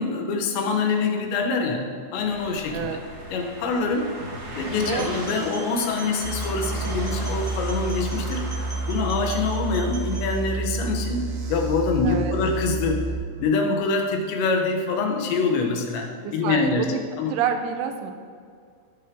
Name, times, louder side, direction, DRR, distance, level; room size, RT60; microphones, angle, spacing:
voice 1, 0.0-3.0 3.3-4.1 4.6-13.0 13.4-16.9 17.2-17.3, left 4 dB, 75° left, 2 dB, 3.4 m, -25 dB
sound 1, 2.1-9.7, right 1 dB, 45° right, 3.8 m, -37 dB
sound 2, 5.0-10.3, right 3 dB, 35° left, 1.3 m, -42 dB
sound 3, 6.2-13.1, right 3 dB, 65° right, 3.4 m, -29 dB
voice 2, 12.0-12.4 16.2-17.0 17.3-18.1, right 7 dB, 85° right, 5 dB, 3.4 m, -28 dB
17.5 x 9.2 x 3.8 m, 2.2 s
omnidirectional pair, 5.3 m